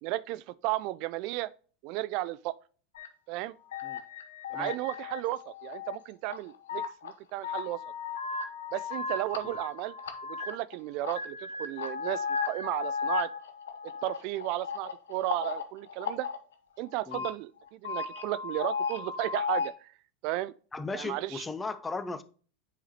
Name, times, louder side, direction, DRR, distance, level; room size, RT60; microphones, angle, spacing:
voice 1, 0.0-1.5 1.8-2.6 3.3-3.5 4.5-7.8 8.7-9.9 10.3-13.3 14.0-16.3 16.8-19.9 20.2-20.5 20.9-21.5, right 16 dB, 50° right, 0.3 m, -34 dB
sound 1, 2.9-3.1 3.7-6.0 6.3-7.1 7.4-10.7 11.0-16.4 16.9-17.3 17.7-19.7, left 5 dB, 70° left, 0.9 m, -35 dB
voice 2, 20.7-22.2, left 3 dB, 15° left, 0.7 m, -37 dB
8.0 x 4.8 x 2.7 m
figure-of-eight pair, 85°, 0 cm